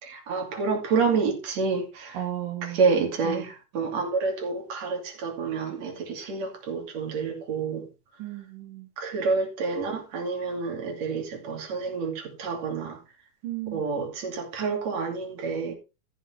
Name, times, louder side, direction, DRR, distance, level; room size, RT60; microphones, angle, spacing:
voice 1, 0.0-2.2 2.6-7.9 9.0-13.0 13.7-15.7, right 4 dB, 55° right, 3.7 m, -28 dB
voice 2, 2.1-2.9 3.2-3.4 8.2-8.9 13.4-13.8, right 13 dB, 85° right, 3.5 m, -34 dB
14.0 x 6.0 x 4.6 m
omnidirectional pair, 3.7 m